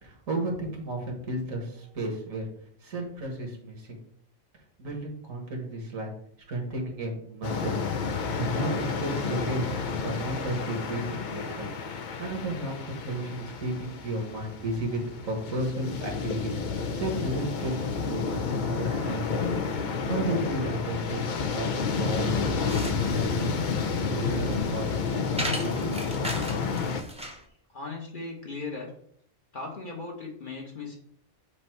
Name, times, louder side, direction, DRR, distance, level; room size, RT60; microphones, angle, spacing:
voice 1, 0.0-2.5 2.8-4.0 4.8-6.1 6.5-7.8 8.0-9.7 10.0-11.7 12.2-19.5 19.8-21.2 21.5-22.5 23.1-23.5 24.1-26.0, right 1 dB, 75° right, 0 dB, 1.9 m, -33 dB
sound 1, 7.4-27.0, left 5 dB, 60° left, 0.5 m, -30 dB
sound 2, 22.6-27.5, right 1 dB, 5° right, 0.5 m, -37 dB
voice 2, 27.7-28.9 29.5-31.0, left 3 dB, 40° left, 0 dB, 1.1 m, -37 dB
7.7 x 2.7 x 4.5 m, 0.66 s
omnidirectional pair, 1.4 m